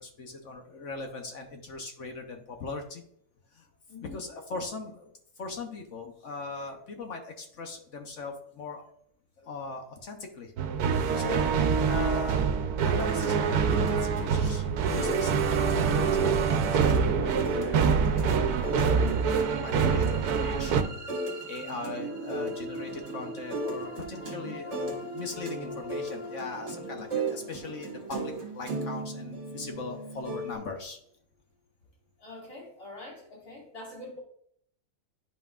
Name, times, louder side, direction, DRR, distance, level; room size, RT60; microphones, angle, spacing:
voice 1, 0.0-3.0 3.5-3.7 4.0-5.1 5.4-8.9 9.4-10.5 11.2-11.5 11.9-12.5 12.8-21.1 21.5-31.0, left 3 dB, 60° left, 4 dB, 1.1 m, -40 dB
voice 2, 3.9-4.2 32.2-34.2, left 2 dB, 75° left, -4 dB, 2.9 m, -44 dB
sound 1, 10.6-20.8, right 6 dB, 80° right, 1.1 m, -25 dB
sound 2, 12.9-30.5, right 2 dB, 50° right, 1.5 m, -37 dB
sound 3, 18.1-29.9, equal, 30° right, 1.9 m, -43 dB
9.4 x 5.6 x 2.4 m, 0.67 s
omnidirectional pair, 1.6 m